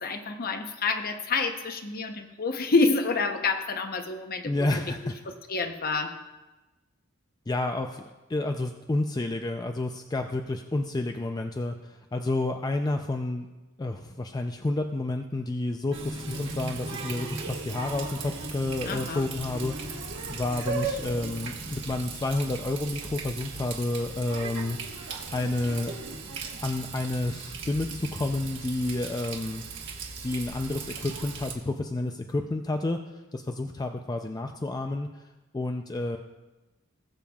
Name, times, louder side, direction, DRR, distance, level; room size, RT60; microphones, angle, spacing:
voice 1, 0.0-4.7 5.3-6.2 18.8-19.3, left 3 dB, 45° left, 6 dB, 0.8 m, -28 dB
voice 2, 4.4-5.1 7.5-8.0 8.3-13.5 13.8-19.7 20.3-24.8 25.3-26.0 26.6-29.6 30.2-33.0 33.3-35.1 35.5-36.2, left 2 dB, 20° left, 5 dB, 0.4 m, -30 dB
Water tap faucet, 15.9-31.5, right 4 dB, 60° right, 1.4 m, -37 dB
20.0 x 7.1 x 2.3 m, 1.1 s
head